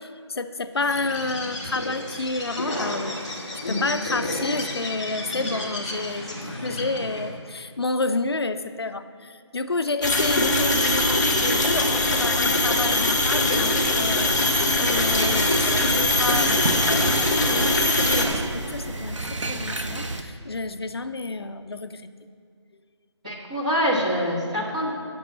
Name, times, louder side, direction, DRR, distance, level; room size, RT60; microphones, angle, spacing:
voice 1, 0.0-3.2 3.7-22.1, left 3 dB, 55° left, 10 dB, 0.4 m, -30 dB
Bird, 0.8-7.4, left 1 dB, 15° left, 0.9 m, -32 dB
sound 1, 10.0-18.3, left 2 dB, 35° left, 1.3 m, -21 dB
sound 2, 14.9-20.2, right 2 dB, 85° right, 0.9 m, -30 dB
voice 2, 23.2-24.9, equal, 15° right, -6 dB, 1.2 m, -25 dB
8.9 x 6.1 x 7.3 m, 2.1 s
figure-of-eight pair, 175°, 15 cm